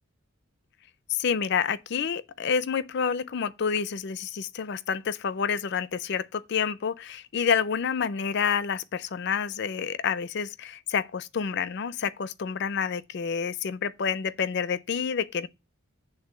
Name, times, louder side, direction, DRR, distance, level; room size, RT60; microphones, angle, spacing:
voice 1, 1.1-15.5, left 6 dB, 50° left, 0.4 m, -28 dB
8.1 x 3.6 x 6.4 m
head